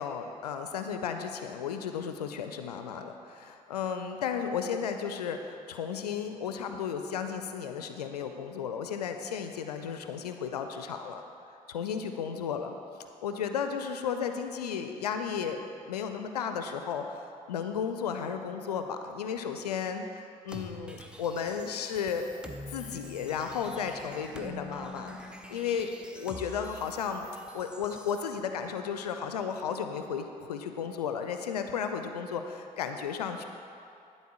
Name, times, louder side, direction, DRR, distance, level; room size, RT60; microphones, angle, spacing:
voice 1, 0.0-11.2 11.7-12.8 13.2-15.6 15.9-22.3 22.7-33.4, left 7 dB, 85° left, 7 dB, 0.4 m, -34 dB
sound 1, 20.5-28.2, equal, 5° right, 0.9 m, -45 dB
12.0 x 4.1 x 7.0 m, 2.6 s
figure-of-eight pair, 45°, 20 cm